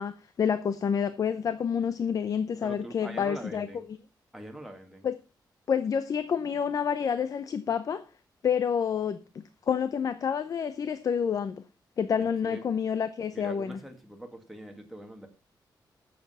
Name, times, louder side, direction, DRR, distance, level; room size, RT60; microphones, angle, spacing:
voice 1, 0.0-3.7 5.0-5.1 5.7-8.0 8.4-9.2 9.7-11.6 12.0-13.8, left 7 dB, 50° left, 0.7 m, -28 dB
voice 2, 2.6-3.9 4.3-5.1 12.4-12.7 13.3-15.3, right 1 dB, ahead, 1.9 m, -42 dB
10.5 x 7.6 x 5.5 m
wide cardioid pair, 165°, 8 cm